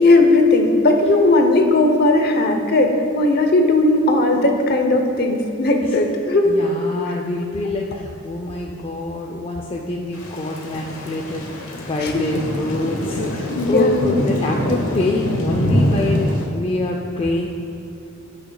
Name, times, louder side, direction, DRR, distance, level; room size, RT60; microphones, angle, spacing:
voice 1, 0.0-6.6 12.0-12.2 13.5-14.1, left 2 dB, 50° left, 4 dB, 0.8 m, -17 dB
voice 2, 6.4-16.3 16.5-17.5, left 2 dB, 30° left, 1 dB, 0.4 m, -25 dB
Thunder / Rain, 10.1-16.5, equal, 85° left, 1.1 m, -24 dB
14.0 x 6.1 x 2.3 m, 2.7 s
head